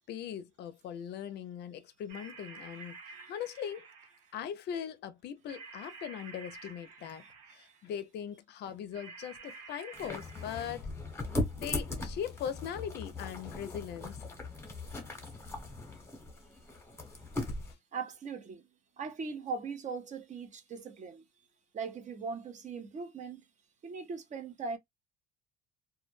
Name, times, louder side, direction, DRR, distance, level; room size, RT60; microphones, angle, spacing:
voice 1, 0.0-3.0 3.3-3.9 4.3-7.2 7.5-10.9 11.6-14.2, left 9 dB, 55° left, 0.5 m, -40 dB
sound 1, 2.1-4.4 5.5-7.9 8.9-10.7, right 4 dB, 90° right, 0.7 m, -50 dB
sound 2, 9.9-17.7, left 2 dB, 10° left, 0.9 m, -39 dB
voice 2, 17.9-18.6 19.0-21.2 21.7-23.4 23.8-24.8, right 5 dB, 35° right, 0.6 m, -40 dB
2.2 x 2.0 x 3.0 m
supercardioid pair, 95°, 21 cm